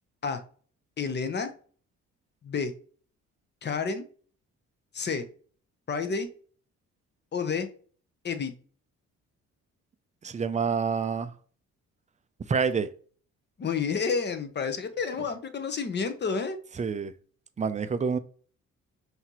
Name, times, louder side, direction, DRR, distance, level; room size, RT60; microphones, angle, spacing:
voice 1, 1.0-1.5 2.4-2.7 3.6-4.1 4.9-5.2 5.9-6.3 7.3-7.7 8.2-8.5 13.6-16.6, left 5 dB, 35° left, 0.8 m, -30 dB
voice 2, 10.2-11.3 12.5-12.9 16.8-17.1 17.6-18.2, right 5 dB, 25° right, 0.5 m, -27 dB
5.7 x 2.8 x 3.0 m
cardioid pair, 90°, 30 cm